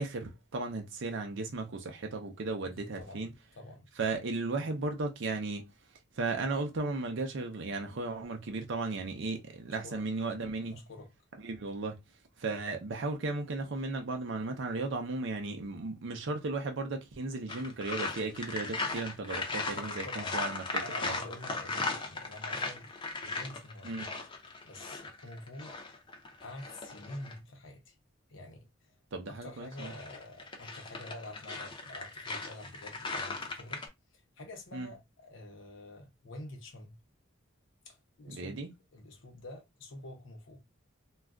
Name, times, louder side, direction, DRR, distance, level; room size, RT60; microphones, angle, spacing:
voice 1, 0.0-3.3 4.0-5.7 6.2-10.8 11.4-12.0 12.4-21.1 23.8-24.1 29.1-29.9 34.7-34.9 38.3-38.7, right 3 dB, 65° right, 0.6 m, -35 dB
voice 2, 2.8-3.3 3.6-3.9 9.8-10.0 10.7-11.1 19.7-20.3 20.8-22.9 23.2-24.0 24.6-26.0 26.4-27.9 28.3-28.9 29.3-33.8 34.1-37.0 37.9-38.6 38.9-40.6, left 1 dB, 70° left, 0.7 m, -47 dB
sound 1, 17.5-27.4 29.5-33.9, left 3 dB, 25° left, 0.6 m, -37 dB
2.3 x 2.2 x 3.5 m
head